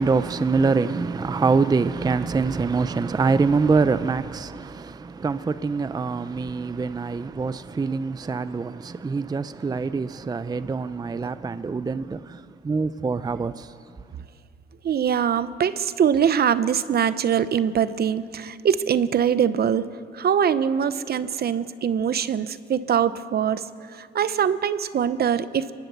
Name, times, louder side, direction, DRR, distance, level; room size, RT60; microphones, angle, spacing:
voice 1, 0.0-12.4 12.6-13.7, right 4 dB, 20° right, 0.5 m, -24 dB
voice 2, 14.8-19.8 20.1-23.6 24.0-25.7, right 8 dB, 50° right, 0.8 m, -23 dB
24.5 x 18.5 x 7.0 m
cardioid pair, 90°, 20 cm